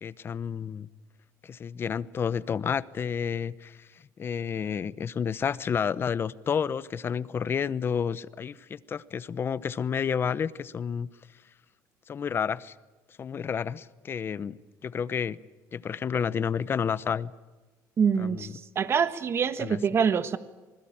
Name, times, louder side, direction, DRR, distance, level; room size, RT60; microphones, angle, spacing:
voice 1, 0.0-0.9 1.4-3.9 4.2-11.1 12.1-12.7 13.2-14.6 14.8-15.4 15.7-17.3 18.2-18.5 19.6-19.8, left 7 dB, 35° left, 18 dB, 0.9 m, -30 dB
voice 2, 18.0-20.4, right 6 dB, 35° right, 12 dB, 1.6 m, -25 dB
27.5 x 20.5 x 8.8 m, 1.2 s
cardioid pair, 120°, 7 cm